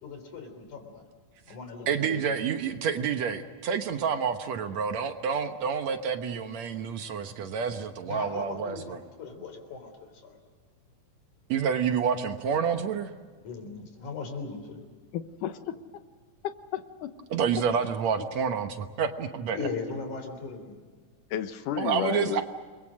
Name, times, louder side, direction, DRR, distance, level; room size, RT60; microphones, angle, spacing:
voice 1, 0.0-1.1 1.5-2.4 8.1-10.4 13.4-14.8 19.5-20.8, left 4 dB, 70° left, 6 dB, 5.1 m, -38 dB
voice 2, 1.9-9.0 11.5-13.1 17.3-19.6 21.8-22.4, right 7 dB, 65° right, 7 dB, 2.3 m, -28 dB
voice 3, 15.1-15.6 16.7-17.1 21.3-22.4, left 10 dB, 90° left, 9 dB, 2.6 m, -32 dB
30.0 x 22.5 x 6.4 m, 1.5 s
omnidirectional pair, 3.6 m